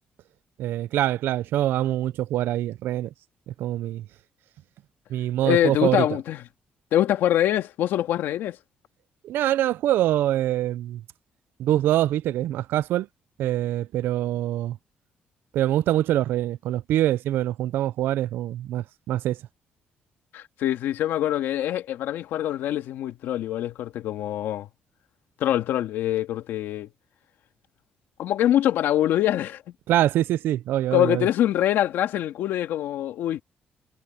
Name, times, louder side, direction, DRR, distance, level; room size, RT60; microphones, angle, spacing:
voice 1, 0.6-3.1 3.5-4.1 5.1-6.1 9.2-11.0 11.6-13.1 13.4-14.8 15.5-19.4 29.9-31.3, right 13 dB, 90° right, 0.5 m, -24 dB
voice 2, 5.4-6.4 6.9-8.6 20.3-24.7 25.4-26.9 28.2-29.6 30.9-33.4, left 12 dB, 90° left, 2.2 m, -24 dB
cardioid pair, 140°, 4 cm